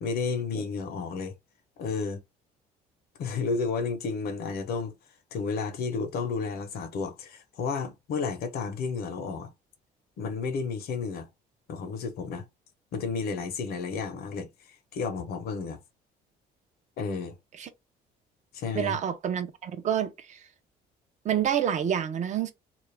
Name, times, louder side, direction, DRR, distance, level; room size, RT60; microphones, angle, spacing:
voice 1, 0.0-1.3 1.8-2.2 3.2-4.9 5.3-9.5 10.2-11.3 11.7-12.5 12.9-14.5 14.9-15.8 17.0-17.4 18.5-19.0, left 5 dB, 65° left, 0.7 m, -32 dB
voice 2, 18.7-20.4 21.2-22.5, right 9 dB, 45° right, 0.5 m, -28 dB
2.3 x 2.0 x 3.2 m
cardioid pair, 110°, 17 cm